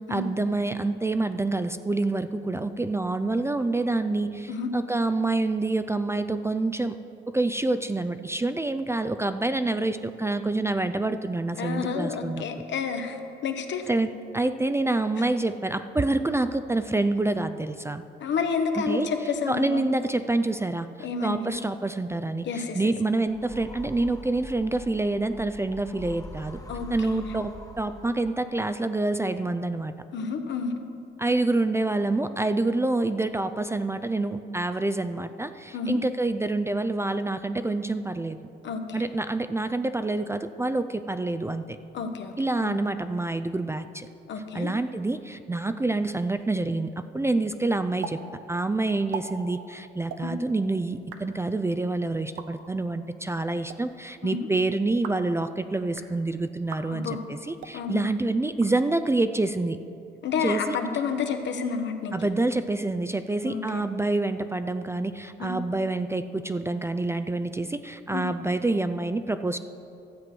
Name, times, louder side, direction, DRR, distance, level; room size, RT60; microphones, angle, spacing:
voice 1, 0.1-7.0 7.3-12.4 13.9-18.0 18.8-19.1 19.5-20.9 21.2-26.6 26.9-29.9 31.2-38.4 38.9-41.8 42.4-44.1 44.5-48.2 48.5-59.8 60.4-60.8 62.1-69.6, right 2 dB, 15° right, 10 dB, 0.4 m, -27 dB
voice 2, 11.6-13.9 18.2-19.8 21.0-21.5 22.4-22.8 26.7-27.2 30.1-30.7 35.7-36.0 38.6-39.0 41.9-42.3 42.6-42.8 44.3-44.7 50.2-50.3 54.2-54.5 56.9-57.2 57.7-58.0 60.2-62.1 63.4-63.9 65.4-65.5 68.1-68.3, left 5 dB, 65° left, 5 dB, 1.1 m, -30 dB
sound 1, 23.3-28.6, equal, 15° left, 1.0 m, -43 dB
sound 2, 48.0-48.2 48.4-48.5 48.9-49.2 50.0-50.2 50.9-51.2 52.2-52.5 53.5-53.8 54.8-55.3 55.8-56.1 56.6-56.8 57.5-57.8 58.5-59.2, right 8 dB, 85° right, 0.8 m, -40 dB
12.5 x 7.6 x 6.1 m, 2.7 s
cardioid pair, 90°, 20 cm